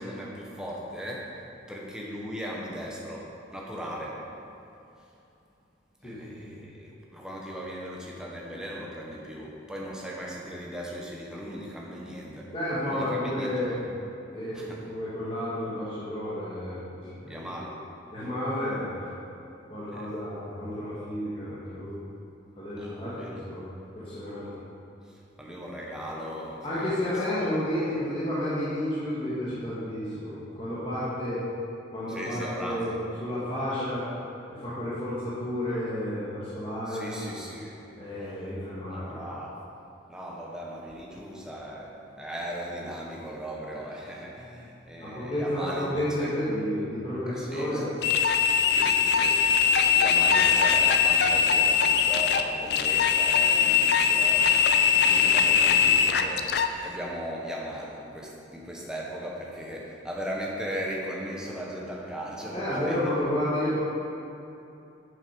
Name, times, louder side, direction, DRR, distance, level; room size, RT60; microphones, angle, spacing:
voice 1, 0.0-1.4 1.7-4.2 6.0-12.5 12.9-13.8 14.5-14.8 17.3-17.8 19.9-20.2 22.8-23.4 24.4-24.5 25.0-27.5 32.1-33.0 36.9-37.8 38.2-38.5 38.9-39.6 40.1-46.3 47.3-47.8 48.7-63.0, equal, 5° right, -3 dB, 1.0 m, -38 dB
voice 2, 6.0-6.7 12.5-13.7 14.3-17.4 18.1-19.1 19.7-21.9 22.6-23.6 23.9-24.5 26.6-31.4 31.9-34.1 34.5-37.3 38.0-39.2 45.0-47.9 55.1-55.2 55.5-55.7 62.5-63.8, left 1 dB, 30° left, -11 dB, 1.6 m, -31 dB
sound 1, 48.0-56.7, left 7 dB, 55° left, 0.4 m, -21 dB
7.4 x 6.5 x 5.2 m, 2.7 s
head